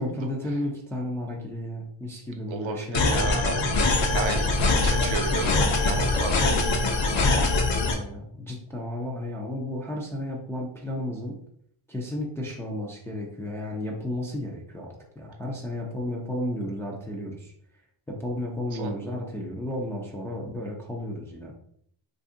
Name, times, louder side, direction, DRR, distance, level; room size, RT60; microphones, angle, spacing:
voice 1, 0.0-3.3 7.9-11.4 11.9-17.5 18.1-21.5, left 1 dB, 5° left, -2 dB, 0.3 m, -33 dB
voice 2, 2.5-3.6 4.1-6.8 7.3-7.5 18.7-18.9, right 5 dB, 70° right, 5 dB, 0.7 m, -33 dB
sound 1, 2.9-7.9, left 2 dB, 60° left, 0.7 m, -23 dB
2.6 x 2.5 x 3.6 m, 0.67 s
wide cardioid pair, 145°, 48 cm